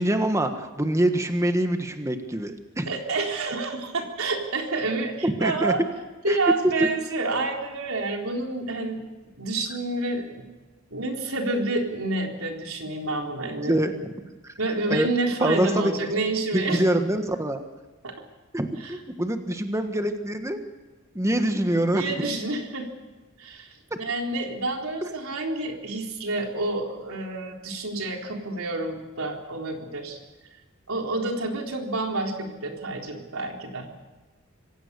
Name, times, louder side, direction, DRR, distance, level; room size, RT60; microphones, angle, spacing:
voice 1, 0.0-2.9 5.2-5.7 6.3-6.4 6.8-6.9 13.6-13.9 14.4-14.5 14.9-15.1 15.4-15.9 16.5-17.6 18.5-20.6 21.1-22.3 25.0-25.1, right 1 dB, 15° right, 6 dB, 1.4 m, -25 dB
voice 2, 2.9-5.8 6.2-9.0 9.4-10.4 10.9-13.8 14.6-16.8 18.0-18.1 18.8-19.0 21.9-22.9 23.4-30.2 30.9-33.9, right 2 dB, 90° right, 2 dB, 4.0 m, -29 dB
26.0 x 16.5 x 6.9 m, 1.2 s
head